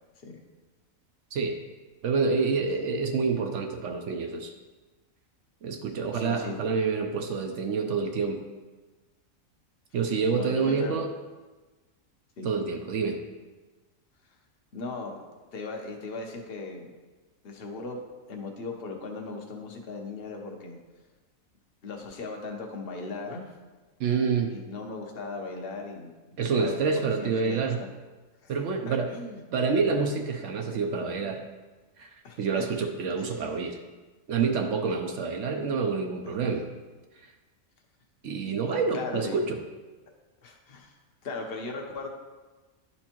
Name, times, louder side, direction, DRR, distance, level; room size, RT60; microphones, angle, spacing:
voice 1, 2.0-4.5 5.6-8.4 9.9-11.1 12.4-13.2 24.0-24.5 26.4-27.8 28.5-29.1 29.5-31.5 32.0-32.1 32.4-33.8 34.3-36.7 38.2-39.6, right 5 dB, 65° right, 4 dB, 0.9 m, -27 dB
voice 2, 6.1-6.6 10.4-11.0 12.4-12.5 14.7-15.2 15.5-16.9 17.4-18.0 18.3-20.8 21.8-23.5 24.5-26.1 26.4-27.9 28.4-28.5 28.9-29.4 32.2-32.9 33.2-33.4 36.3-36.4 38.5-39.4 40.1-40.2 40.4-40.9 41.2-42.1, left 3 dB, 50° left, 2 dB, 1.0 m, -38 dB
11.0 x 4.4 x 2.9 m, 1.3 s
omnidirectional pair, 1.4 m